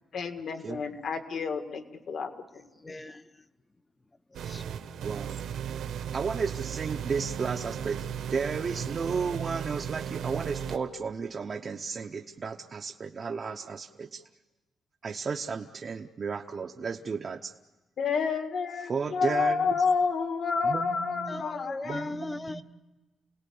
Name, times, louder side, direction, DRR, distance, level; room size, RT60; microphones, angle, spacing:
voice 1, 0.1-2.3 18.0-22.1, left 5 dB, 50° left, 6 dB, 1.9 m, -29 dB
voice 2, 2.8-3.4 4.3-4.6 21.3-22.6, left 2 dB, 15° left, 13 dB, 0.8 m, -38 dB
sound 1, 4.3-10.8, right 8 dB, 75° right, 1.4 m, -36 dB
voice 3, 5.0-5.4 5.9-14.2 15.0-17.5 18.8-19.8 20.6-21.5 21.8-22.6, right 5 dB, 35° right, 3 dB, 0.8 m, -34 dB
28.5 x 18.5 x 8.6 m, 1.1 s
cardioid pair, 170°, 0 cm